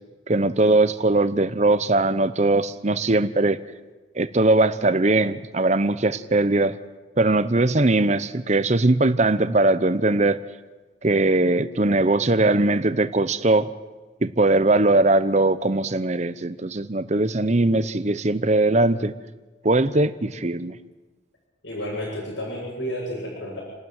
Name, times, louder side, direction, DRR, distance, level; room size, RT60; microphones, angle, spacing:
voice 1, 0.3-3.6 4.1-6.7 7.2-10.4 11.0-13.7 14.2-19.1 19.6-20.8, right 2 dB, 35° right, 13 dB, 0.8 m, -20 dB
voice 2, 21.6-23.6, equal, 75° left, -5 dB, 7.6 m, -31 dB
29.0 x 12.5 x 9.0 m, 1.3 s
head